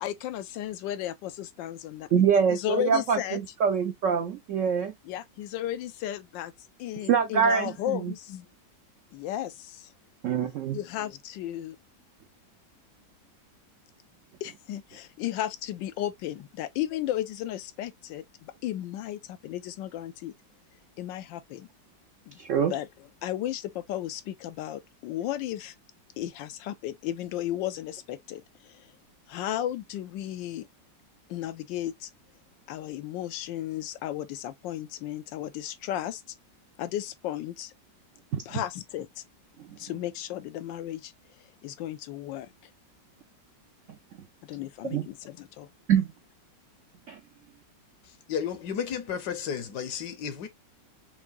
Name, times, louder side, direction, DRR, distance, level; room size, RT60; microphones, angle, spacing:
voice 1, 0.0-2.1 2.5-3.4 5.0-6.5 6.8-8.5 9.1-9.9 10.7-11.8 14.4-20.3 21.0-21.7 22.3-22.4 22.7-22.9 23.2-25.7 26.2-28.9 29.3-30.7 31.3-32.1 32.7-36.2 36.8-37.7 38.5-39.2 39.8-41.1 41.6-42.5 44.4-45.7, left 12 dB, 85° left, 1.3 m, -34 dB
voice 2, 2.1-4.9 7.1-8.1 10.2-10.8 22.4-22.7 38.3-38.6 39.7-39.8 44.9-45.1 45.9-46.1 47.1-47.2, right 7 dB, 75° right, 0.7 m, -25 dB
voice 3, 48.3-50.5, left 8 dB, 65° left, 1.3 m, -32 dB
5.8 x 2.6 x 2.3 m
omnidirectional pair, 2.0 m